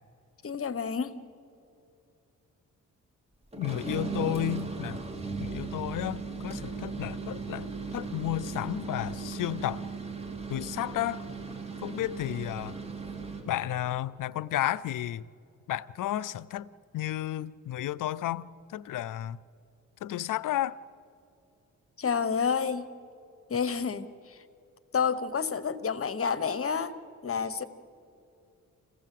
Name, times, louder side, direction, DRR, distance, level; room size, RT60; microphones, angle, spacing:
voice 1, 0.4-1.2 22.0-22.9 23.5-24.4 24.9-26.9 27.2-27.6, left 6 dB, 45° left, 1.0 m, -29 dB
sound 1, 3.5-13.5, right 4 dB, 20° right, 2.7 m, -37 dB
voice 2, 3.6-5.0 5.4-9.8 10.5-11.2 11.8-12.8 13.5-15.2 15.7-16.7 16.9-19.4 20.0-20.8, left 13 dB, 75° left, 0.5 m, -32 dB
28.0 x 15.5 x 7.6 m
cardioid pair, 75°, 32 cm